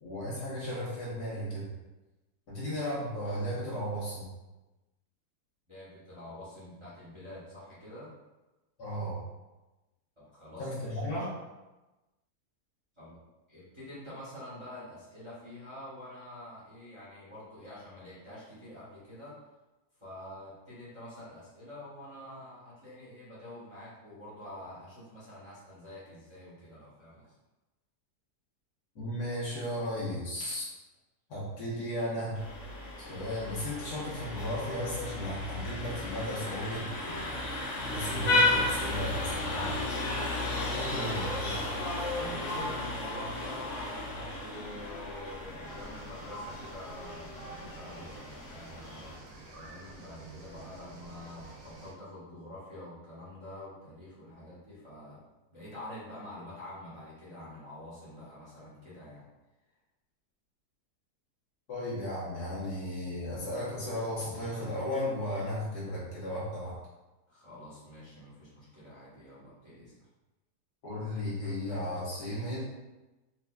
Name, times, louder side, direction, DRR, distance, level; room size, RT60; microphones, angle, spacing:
voice 1, 0.0-1.7 2.5-4.3 8.8-9.2 10.6-11.3 29.0-30.6 31.3-32.4 33.0-37.4 37.9-39.8 40.7-41.3 41.5-41.6 61.7-66.8 70.8-72.7, left 1 dB, 80° left, -8 dB, 1.7 m, -35 dB
voice 2, 5.7-8.1 10.2-11.3 13.0-13.2 13.5-19.3 20.0-27.3 40.6-41.2 42.1-49.2 49.5-55.2 55.5-59.3 67.3-69.9, left 1 dB, 20° right, -11 dB, 1.0 m, -47 dB
Vehicle horn car horn honking, 32.3-49.2, left 2 dB, 60° left, 0.8 m, -34 dB
sound 1, 45.6-51.9, right 2 dB, 75° right, 1.4 m, -50 dB
4.3 x 2.5 x 2.3 m, 1.1 s
omnidirectional pair, 1.7 m